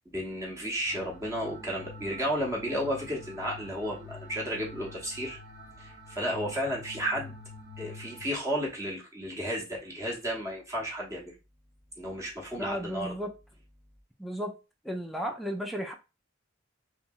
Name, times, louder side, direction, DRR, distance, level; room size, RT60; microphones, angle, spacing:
voice 1, 0.1-5.4 5.8-7.4 7.8-11.3 12.0-13.1, equal, 15° right, 0.7 m, -33 dB
sound 1, 0.9-8.3, left 2 dB, 55° right, 0.7 m, -47 dB
voice 2, 12.6-13.3 14.2-14.5 14.8-15.9, equal, ahead, 0.3 m, -34 dB
2.9 x 2.7 x 2.2 m
head